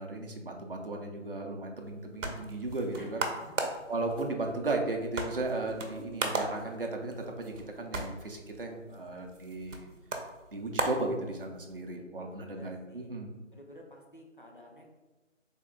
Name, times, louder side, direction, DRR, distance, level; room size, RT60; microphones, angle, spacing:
voice 1, 0.0-3.2 3.9-9.9 10.5-13.3, right 2 dB, 50° right, 2 dB, 0.5 m, -35 dB
sound 1, 1.8-11.8, right 3 dB, 80° right, 0.7 m, -38 dB
voice 2, 2.9-3.7 11.9-13.1 13.5-15.0, left 1 dB, 45° left, -1 dB, 0.5 m, -52 dB
3.5 x 2.1 x 3.7 m, 1.1 s
figure-of-eight pair, 165°, 38 cm